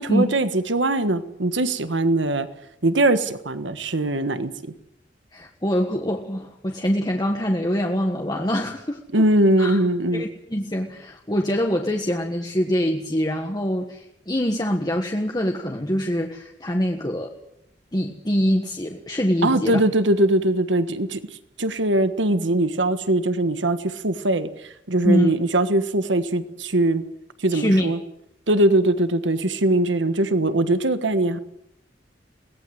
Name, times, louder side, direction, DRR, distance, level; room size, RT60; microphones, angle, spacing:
voice 1, 0.0-2.5 2.8-4.7 9.1-10.2 19.4-21.2 21.6-27.0 27.4-28.0 28.5-31.4, right 1 dB, 85° right, 11 dB, 1.5 m, -21 dB
voice 2, 5.3-9.2 9.6-9.8 10.1-17.3 17.9-19.8 25.0-25.3 27.5-27.9, equal, 20° left, 1 dB, 1.5 m, -24 dB
22.5 x 18.5 x 7.9 m, 0.81 s
head